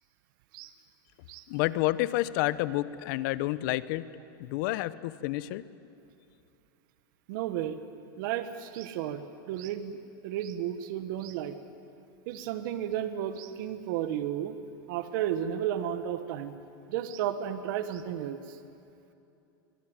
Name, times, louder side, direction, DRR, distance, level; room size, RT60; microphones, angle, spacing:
voice 1, 1.5-4.0 4.4-5.6, left 17 dB, 55° left, 15 dB, 1.0 m, -29 dB
voice 2, 7.3-7.8 8.2-10.0 10.2-11.5 12.3-14.6 14.9-16.5 16.9-18.6, right 10 dB, 60° right, 9 dB, 1.4 m, -33 dB
23.0 x 22.5 x 9.0 m, 2.7 s
supercardioid pair, 130°, 12 cm